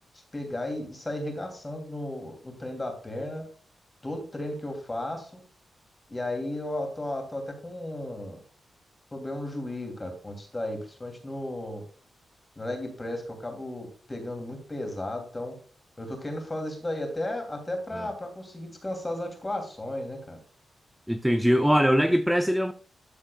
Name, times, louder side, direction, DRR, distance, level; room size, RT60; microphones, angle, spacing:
voice 1, 0.3-3.4 4.0-5.4 6.1-8.4 9.1-11.8 12.6-15.5 16.0-20.4, left 1 dB, 15° left, 2.7 m, -34 dB
voice 2, 21.1-22.7, equal, ahead, 0.5 m, -22 dB
13.0 x 7.5 x 2.3 m
wide cardioid pair, 170°, 0 cm